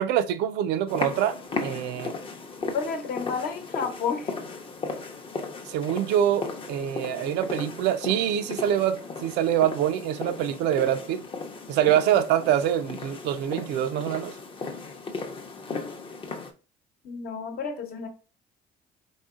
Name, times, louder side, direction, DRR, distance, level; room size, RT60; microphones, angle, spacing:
voice 1, 0.0-2.1 5.7-11.2 11.7-14.3, right 10 dB, 90° right, 0.4 m, -25 dB
sound 1, 0.9-16.5, left 3 dB, 30° left, 0.6 m, -36 dB
voice 2, 2.6-4.3 17.0-18.1, left 5 dB, 65° left, 0.9 m, -31 dB
3.9 x 3.7 x 2.4 m
cardioid pair, 110°, 17 cm